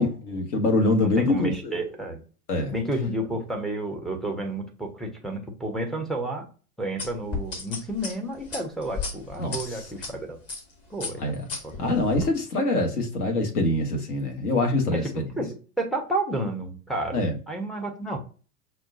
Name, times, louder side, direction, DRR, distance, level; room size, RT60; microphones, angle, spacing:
voice 1, 0.0-1.8 2.5-2.7 9.4-9.9 11.2-11.4 11.8-15.2 17.1-17.4, left 2 dB, 70° left, 1.4 m, -24 dB
voice 2, 1.0-2.2 2.7-6.5 6.8-10.4 10.9-11.3 11.6-12.0 14.9-18.2, right 1 dB, ahead, 0.4 m, -31 dB
sound 1, 7.0-10.1 10.5-10.7 11.0-12.3, left 4 dB, 30° left, 1.2 m, -34 dB
5.6 x 2.2 x 2.6 m
figure-of-eight pair, 95°, 46 cm